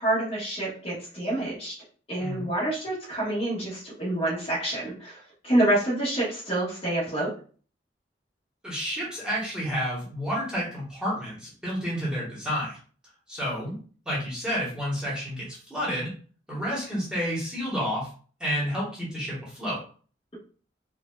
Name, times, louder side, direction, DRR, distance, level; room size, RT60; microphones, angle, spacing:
voice 1, 0.0-1.7 2.1-5.2 5.4-7.3, right 1 dB, 35° left, -5 dB, 1.5 m, -27 dB
voice 2, 8.6-12.8 13.3-13.7 14.0-16.1 16.5-18.1 18.4-19.8, equal, 5° right, -7 dB, 1.5 m, -30 dB
4.6 x 2.7 x 2.5 m, 0.42 s
head